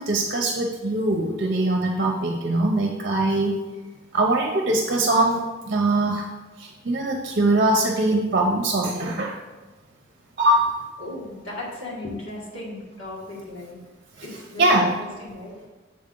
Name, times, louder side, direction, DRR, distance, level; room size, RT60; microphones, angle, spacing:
voice 1, 0.0-3.6 4.1-6.3 6.6-9.4 10.4-10.8 14.6-14.9, right 2 dB, 45° right, 1 dB, 0.7 m, -22 dB
voice 2, 11.0-13.8 14.2-15.5, left 2 dB, 85° left, -5 dB, 2.1 m, -36 dB
7.6 x 4.1 x 3.8 m, 1.2 s
head